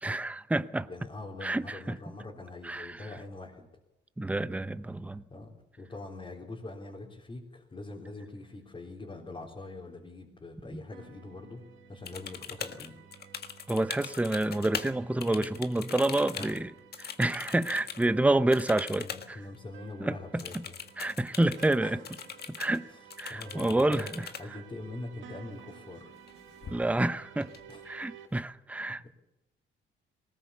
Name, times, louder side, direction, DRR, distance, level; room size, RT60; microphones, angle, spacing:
voice 1, 0.0-0.9 1.4-2.0 2.6-3.0 4.2-5.2 10.7-10.8 13.7-16.7 17.0-19.1 20.0-20.6 21.0-22.0 22.5-22.9 23.2-24.3 26.7-27.5 27.8-29.1, right 2 dB, 5° right, 0.8 m, -28 dB
voice 2, 0.9-3.7 5.3-12.9 16.3-16.5 19.0-20.7 21.8-22.0 22.9-24.0 24.4-26.1 27.7-27.8, left 2 dB, 25° left, 3.8 m, -43 dB
sound 1, 10.9-28.3, right 7 dB, 75° right, 2.0 m, -53 dB
sound 2, 12.1-14.9 15.2-18.1 18.5-19.3 19.5-19.6 20.4-21.8 22.0-22.8 23.1-24.4 26.1-26.3 26.6-27.1 27.4-28.0, left 7 dB, 55° left, 1.6 m, -41 dB
20.0 x 19.0 x 7.0 m
cardioid pair, 90°, 20 cm